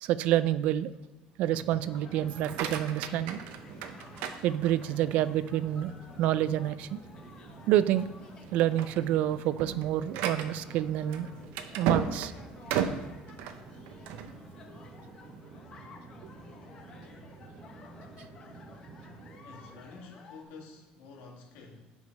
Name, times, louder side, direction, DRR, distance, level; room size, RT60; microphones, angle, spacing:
voice 1, 0.0-0.9 1.4-3.4 4.4-5.9 6.2-7.0 7.7-8.1 8.5-11.3 11.8-12.3, right 12 dB, 55° right, 16 dB, 0.3 m, -28 dB
sound 1, 1.4-20.0, right 3 dB, 25° right, 0.8 m, -50 dB
sound 2, 1.8-20.4, left 4 dB, 30° left, 0.9 m, -54 dB
sound 3, 2.3-5.1 5.6-6.0 6.5-6.6 7.0-7.2 7.8-8.1 8.5-14.3, right 8 dB, 75° right, 0.7 m, -35 dB
voice 2, 19.4-21.8, left 4 dB, 70° left, 0 dB, 1.9 m, -49 dB
8.1 x 4.9 x 5.3 m, 1.1 s
cardioid pair, 180°, 3 cm